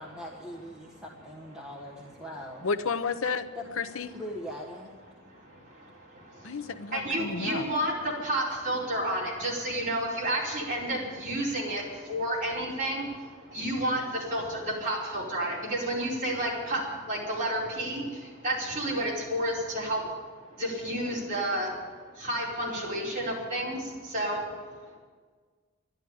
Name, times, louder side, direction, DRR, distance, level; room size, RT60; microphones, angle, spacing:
voice 1, 0.0-2.7 3.5-3.7 4.1-4.9 10.4-10.5, equal, 5° right, -3 dB, 1.3 m, -41 dB
voice 2, 2.6-3.5 3.8-4.1 6.4-7.7, left 5 dB, 70° left, 9 dB, 0.7 m, -31 dB
voice 3, 5.1-25.0, right 1 dB, 35° right, -5 dB, 4.7 m, -31 dB
11.5 x 11.5 x 9.9 m, 1.5 s
head